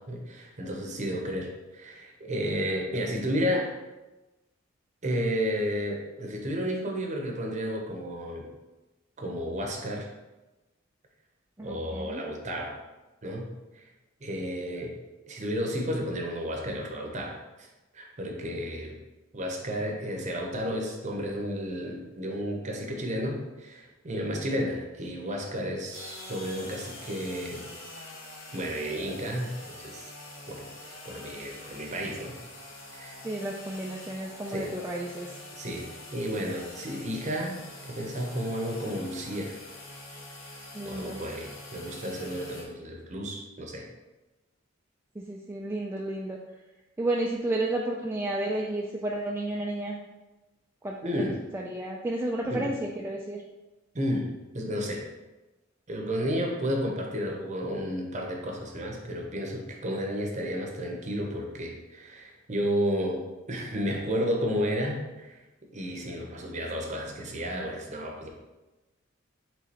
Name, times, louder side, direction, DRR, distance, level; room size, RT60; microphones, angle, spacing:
voice 1, 0.1-3.7 5.0-8.5 9.2-10.1 11.6-12.8 13.2-13.5 13.8-13.9 14.2-14.9 15.3-17.7 17.9-18.9 19.3-27.7 28.5-30.1 30.5-30.7 31.0-32.3 32.9-33.2 34.4-34.7 35.6-39.6 40.8-43.9 51.0-51.4 52.5-52.6 53.9-54.3 54.5-55.1 55.9-65.4 65.7-68.3, equal, 35° right, 1 dB, 0.8 m, -32 dB
voice 2, 11.6-12.2 33.2-35.4 40.7-41.2 45.2-46.4 47.0-50.0 50.8-53.4, right 1 dB, 10° right, -2 dB, 0.3 m, -32 dB
sound 1, 25.9-42.6, left 2 dB, 75° left, 1.1 m, -45 dB
5.0 x 3.7 x 2.9 m, 1.1 s
head